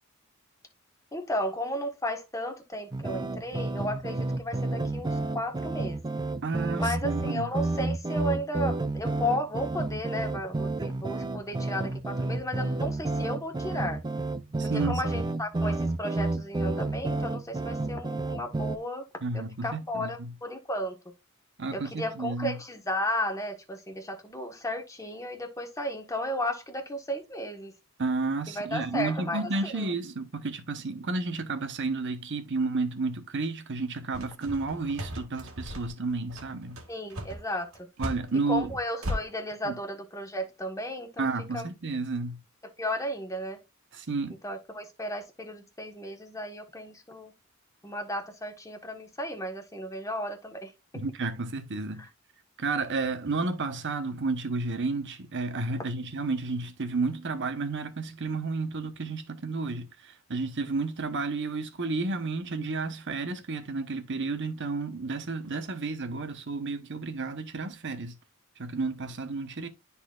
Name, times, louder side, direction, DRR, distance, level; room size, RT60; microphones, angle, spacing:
voice 1, 1.1-5.1 5.3-6.0 6.8-14.0 14.7-19.0 19.3-21.0 21.7-27.7 28.5-29.9 36.9-37.9 38.5-41.3 41.5-41.7 42.8-43.6 44.4-47.3 47.8-50.7 52.0-52.1, left 1 dB, 15° left, 1.3 m, -34 dB
sound 1, 2.9-18.8, right 2 dB, 20° right, 0.5 m, -31 dB
voice 2, 6.4-7.5 14.6-15.3 19.2-20.3 21.6-22.6 28.0-36.8 38.0-38.7 39.6-39.7 41.2-42.4 43.9-44.4 50.9-52.1 52.6-68.2 68.6-69.7, right 3 dB, 60° right, 1.0 m, -31 dB
sound 2, 34.1-39.2, equal, 90° right, 1.7 m, -36 dB
12.0 x 4.2 x 2.4 m
head